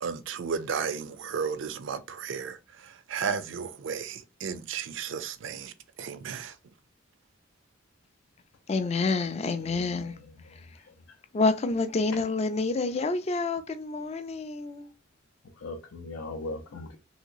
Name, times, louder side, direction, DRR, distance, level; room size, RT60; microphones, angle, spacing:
voice 1, 0.0-6.6, right 6 dB, 65° right, 0.4 m, -34 dB
voice 2, 8.7-10.2 10.5-10.8 11.3-14.9, left 3 dB, 30° left, 0.4 m, -28 dB
voice 3, 9.6-10.1 10.5-10.6 10.9-11.0 15.6-17.0, left 2 dB, 80° left, 0.5 m, -39 dB
3.0 x 2.8 x 2.6 m
head